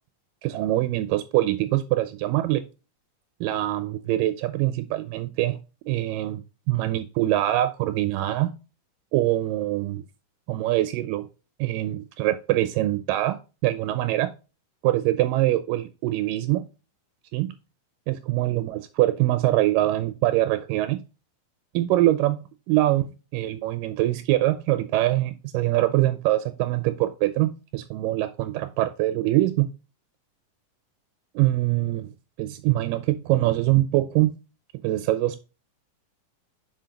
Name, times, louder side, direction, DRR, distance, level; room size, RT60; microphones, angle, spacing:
voice 1, 0.4-2.6 3.4-5.6 5.9-6.4 6.7-8.5 9.1-10.0 10.5-11.3 11.6-14.3 14.8-16.6 17.3-17.5 18.1-21.0 21.7-29.7 31.4-32.1 32.4-34.4 34.8-35.4, right 15 dB, 85° right, 11 dB, 2.1 m, -24 dB
5.7 x 5.5 x 3.7 m, 0.30 s
omnidirectional pair, 3.9 m